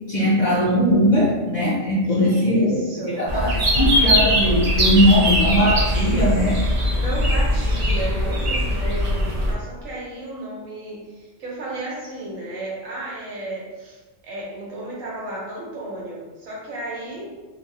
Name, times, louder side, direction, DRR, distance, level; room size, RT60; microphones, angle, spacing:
voice 1, 0.1-6.6 7.9-8.0, equal, 65° left, -5 dB, 0.4 m, -19 dB
voice 2, 2.0-3.3 6.9-17.4, right 1 dB, 85° right, -5 dB, 1.4 m, -33 dB
sound 1, 3.3-9.5, equal, 50° right, 0.4 m, -20 dB
2.8 x 2.5 x 3.3 m, 1.2 s
omnidirectional pair, 1.3 m